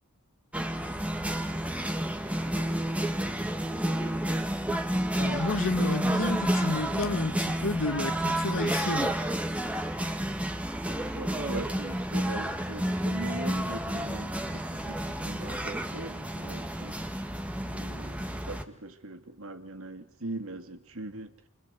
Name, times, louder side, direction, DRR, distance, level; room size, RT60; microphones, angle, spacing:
sound 1, 0.5-18.6, right 1 dB, 5° right, 1.9 m, -30 dB
voice 1, 5.2-9.2, left 2 dB, 60° left, 1.7 m, -31 dB
voice 2, 11.1-17.0 17.6-21.5, right 2 dB, 65° right, 2.5 m, -41 dB
29.0 x 24.0 x 8.4 m
head